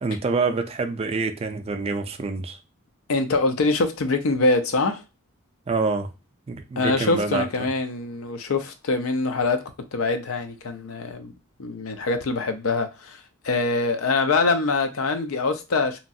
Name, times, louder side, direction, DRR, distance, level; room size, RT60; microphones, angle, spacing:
voice 1, 0.0-2.6 5.7-6.1 6.5-7.5, right 4 dB, 30° right, 0.3 m, -26 dB
voice 2, 3.1-5.0 6.8-11.3 11.6-16.0, left 3 dB, 75° left, 0.5 m, -24 dB
2.9 x 2.3 x 2.6 m
head